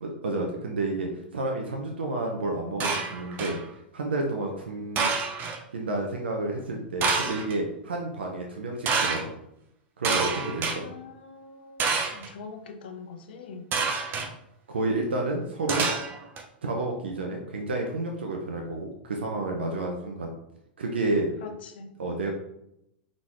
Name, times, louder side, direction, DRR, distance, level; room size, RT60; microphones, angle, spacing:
voice 1, 0.0-3.6 3.9-5.1 5.7-9.3 10.0-10.8 14.7-15.9 16.6-20.3 20.8-21.3 22.0-22.3, right 2 dB, 85° right, 1 dB, 0.7 m, -30 dB
sound 1, 2.8-3.6 5.0-5.6 7.0-7.5 8.9-9.2 10.0-10.8 11.8-12.3 13.7-14.3 15.7-16.4, right 4 dB, 35° right, 0.9 m, -27 dB
voice 2, 10.4-13.7 21.4-21.9, left 5 dB, 70° left, 6 dB, 0.7 m, -43 dB
3.9 x 3.8 x 3.1 m, 0.80 s
hypercardioid pair, 105°, 6 cm